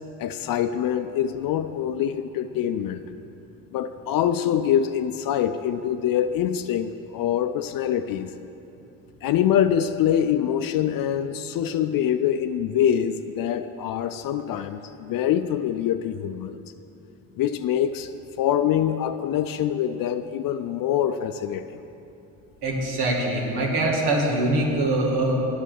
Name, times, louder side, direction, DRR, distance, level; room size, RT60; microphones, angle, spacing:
voice 1, 0.2-3.0 3.7-8.3 9.2-16.6 17.4-18.1 18.4-21.8, left 10 dB, 55° left, 10 dB, 0.5 m, -24 dB
voice 2, 22.6-25.3, right 2 dB, 70° right, 0 dB, 1.9 m, -23 dB
8.9 x 7.0 x 6.6 m, 2.8 s
supercardioid pair, 75°, 40 cm